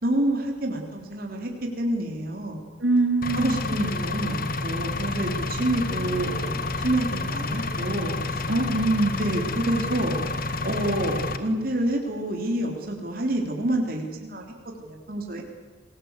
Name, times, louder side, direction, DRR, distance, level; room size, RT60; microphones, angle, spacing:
voice 1, 0.0-2.7 3.3-8.5 9.2-10.2 10.6-15.4, right 1 dB, 50° right, 2 dB, 3.4 m, -28 dB
voice 2, 2.8-3.7 8.5-9.2, right 2 dB, 85° right, 4 dB, 3.7 m, -23 dB
Engine, 3.2-11.4, left 3 dB, 50° left, 1.6 m, -29 dB
27.0 x 19.0 x 8.2 m, 1.4 s
head